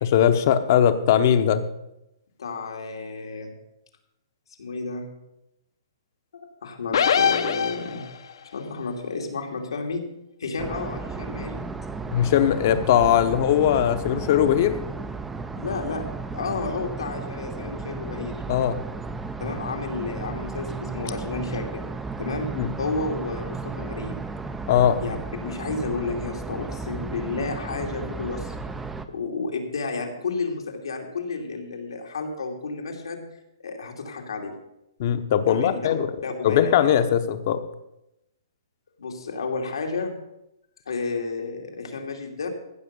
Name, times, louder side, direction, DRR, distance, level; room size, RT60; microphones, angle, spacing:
voice 1, 0.0-1.6 12.1-14.8 18.5-18.8 22.5-22.7 24.7-25.0 35.0-36.1 36.4-37.6, left 9 dB, 35° left, 10 dB, 0.8 m, -20 dB
voice 2, 2.4-3.5 4.6-5.1 6.3-8.0 8.5-10.1 10.4-11.6 15.6-16.1 16.3-18.4 19.4-21.8 22.2-22.5 22.8-24.2 25.0-25.2 25.4-28.6 29.1-33.2 33.6-34.5 35.5-35.9 36.2-36.9 39.0-40.2 40.9-42.5, left 4 dB, 90° left, 2 dB, 2.6 m, -31 dB
sound 1, 6.9-8.3, left 7 dB, 60° left, 0.9 m, -22 dB
sound 2, 10.6-29.1, right 4 dB, 5° right, 0.4 m, -34 dB
15.0 x 6.0 x 6.8 m, 0.87 s
hypercardioid pair, 170°, 3 cm